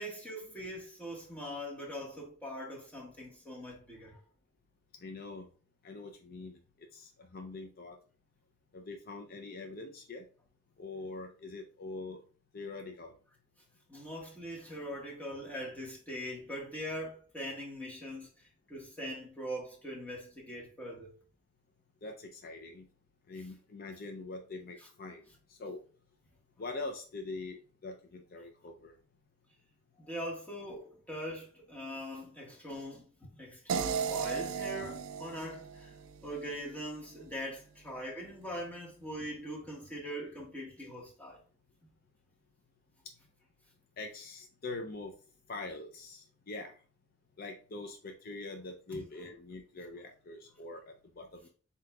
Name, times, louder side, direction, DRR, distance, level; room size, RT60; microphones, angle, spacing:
voice 1, 0.0-4.2 13.9-21.1 30.0-33.0 33.3-35.9 36.2-41.4 48.9-49.0, equal, 10° left, 1.5 m, -42 dB
voice 2, 5.0-5.5 5.8-6.6 6.9-8.0 8.7-10.2 10.8-12.2 12.5-13.1 22.0-22.9 23.3-25.2 25.5-25.8 26.6-28.9 44.0-45.1 45.5-46.7 47.4-51.5, left 3 dB, 50° left, 0.5 m, -43 dB
sound 1, 33.7-36.8, right 6 dB, 90° right, 0.4 m, -36 dB
7.6 x 2.9 x 2.3 m
head